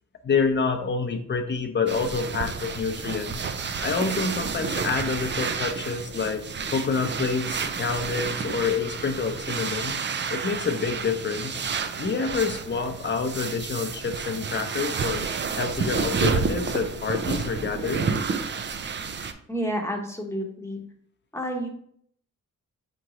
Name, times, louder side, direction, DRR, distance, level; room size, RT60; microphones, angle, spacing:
voice 1, 0.2-3.4 3.8-6.4 6.7-10.0 10.3-11.6 12.0-15.2 15.6-18.4, left 5 dB, 35° left, 6 dB, 0.7 m, -27 dB
sound 1, 1.9-19.3, right 5 dB, 35° right, 0.4 m, -30 dB
voice 2, 19.5-20.8 21.3-21.7, equal, 10° left, 1 dB, 0.9 m, -30 dB
4.5 x 3.1 x 3.7 m, 0.65 s
cardioid pair, 85°, 31 cm